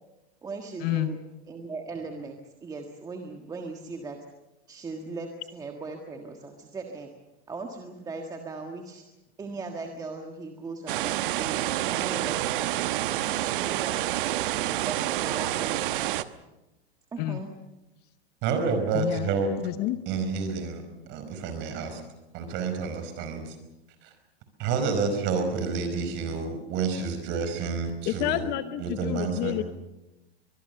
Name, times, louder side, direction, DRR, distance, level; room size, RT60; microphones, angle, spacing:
voice 1, 0.4-1.2 1.5-4.2 4.7-7.1 7.5-9.0 9.4-12.7 13.6-14.0 14.8-15.8 17.1-17.5, right 3 dB, 10° right, 3 dB, 1.5 m, -38 dB
sound 1, 10.9-16.2, right 14 dB, 55° right, 1.1 m, -28 dB
voice 2, 18.4-19.5 20.1-20.8 21.1-22.0 22.3-23.6 24.0-24.1 24.6-29.6, right 5 dB, 35° right, 8 dB, 5.0 m, -29 dB
voice 3, 18.9-19.3 19.6-20.0 28.1-29.6, left 15 dB, 30° left, 12 dB, 0.9 m, -29 dB
24.0 x 21.5 x 6.8 m, 0.98 s
supercardioid pair, 150°, 32 cm